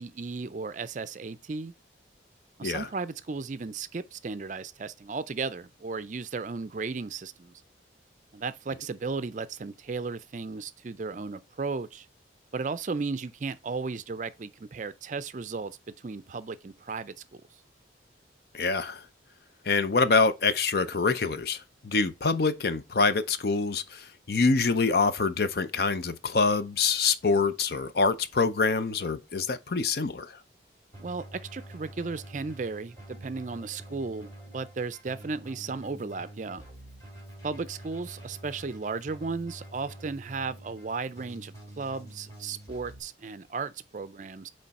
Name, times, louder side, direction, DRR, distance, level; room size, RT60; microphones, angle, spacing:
voice 1, 0.0-1.7 2.6-7.5 8.3-12.1 12.5-17.4 31.0-36.6 37.4-44.5, right 4 dB, 40° right, 0.4 m, -35 dB
voice 2, 18.5-19.1 19.7-30.4, left 4 dB, 55° left, 0.5 m, -25 dB
Keyboard (musical), 30.9-43.0, right 1 dB, 20° left, 2.4 m, -47 dB
8.6 x 3.2 x 4.1 m
head